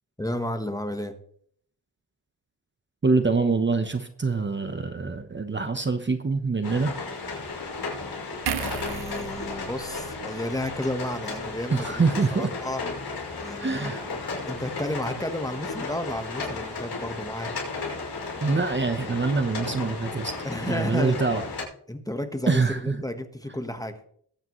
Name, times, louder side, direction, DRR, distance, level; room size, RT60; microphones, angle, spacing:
voice 1, 0.2-1.1 8.5-11.9 12.3-12.8 13.4-17.5 20.4-21.4 21.9-24.0, left 1 dB, 10° left, 7 dB, 1.3 m, -32 dB
voice 2, 3.0-7.0 11.7-12.5 13.6-14.1 18.4-20.3 20.7-21.4 22.5-23.0, right 4 dB, 25° right, 8 dB, 1.0 m, -25 dB
sound 1, 6.6-21.6, left 3 dB, 70° left, 5.8 m, -34 dB
sound 2, 8.5-11.8 12.2-12.4, right 9 dB, 65° right, 0.8 m, -37 dB
21.0 x 9.0 x 3.1 m, 0.63 s
cardioid pair, 95°, 41 cm